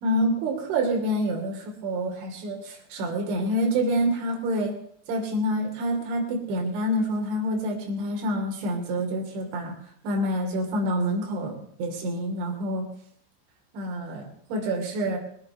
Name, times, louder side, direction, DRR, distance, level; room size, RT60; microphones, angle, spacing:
voice 1, 0.0-4.7 5.1-9.7 10.0-12.9 13.7-15.2, equal, 75° right, 1 dB, 5.3 m, -27 dB
21.5 x 8.6 x 6.5 m, 0.63 s
omnidirectional pair, 5.5 m